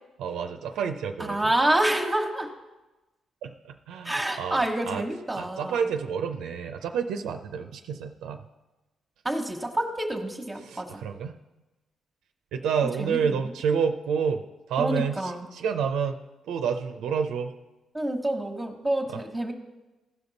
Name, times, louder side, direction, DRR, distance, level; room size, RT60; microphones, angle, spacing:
voice 1, 0.2-1.4 3.4-5.0 5.3-8.4 10.6-11.4 12.5-14.4 14.7-16.2 16.5-17.5 19.1-19.2, right 6 dB, 85° right, 6 dB, 0.5 m, -29 dB
voice 2, 1.3-2.5 4.0-5.9 9.2-11.0 13.0-13.4 14.8-15.5 17.9-19.5, right 1 dB, 10° right, 2 dB, 1.2 m, -27 dB
15.5 x 5.2 x 4.0 m, 1.1 s
cardioid pair, 75°, 0 cm